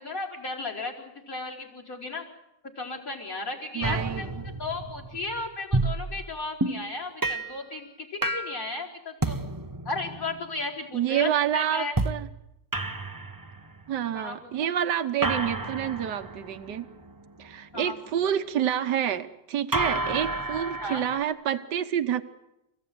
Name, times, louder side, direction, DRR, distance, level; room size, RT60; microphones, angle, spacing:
voice 1, 0.0-2.2 2.8-9.4 9.9-11.9 14.1-14.7 17.7-18.0 18.2-18.3 20.3-20.4 20.8-21.0, left 3 dB, 50° left, 4 dB, 5.2 m, -35 dB
voice 2, 3.7-4.3 10.9-12.3 13.9-16.9 17.4-22.2, right 10 dB, 75° right, 10 dB, 1.8 m, -28 dB
sound 1, 3.8-6.9 7.2-7.6 8.2-8.7 9.2-10.4 12.0-12.3 12.7-13.9 15.2-17.6 19.7-21.2, right 2 dB, 15° right, 0.7 m, -31 dB
29.0 x 16.0 x 9.4 m, 0.88 s
omnidirectional pair, 1.9 m